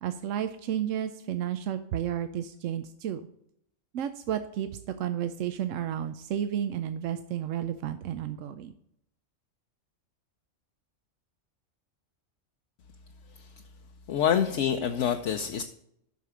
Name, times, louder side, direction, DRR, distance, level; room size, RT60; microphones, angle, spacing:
voice 1, 0.0-3.2 3.9-4.7 5.0-8.7, right 10 dB, 90° right, 9 dB, 1.0 m, -32 dB
voice 2, 14.1-15.6, left 8 dB, 75° left, 5 dB, 0.9 m, -27 dB
8.3 x 6.0 x 4.9 m, 0.72 s
omnidirectional pair, 1.3 m